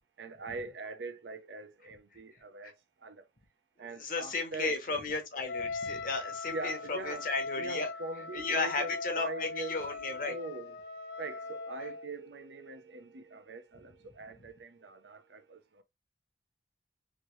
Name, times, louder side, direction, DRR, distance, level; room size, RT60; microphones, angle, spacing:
voice 1, 0.2-2.7 3.0-3.2 3.8-4.7 6.5-7.2 7.6-8.9 9.1-9.7 10.3-15.8, right 3 dB, 85° right, 0.6 m, -42 dB
voice 2, 3.9-7.9 8.2-10.3 11.8-11.9 14.3-14.4, left 3 dB, 50° left, 0.9 m, -34 dB
Wind instrument woodwind instrument, 5.5-12.1, left 3 dB, 70° left, 0.4 m, -40 dB
3.2 x 2.7 x 3.1 m
head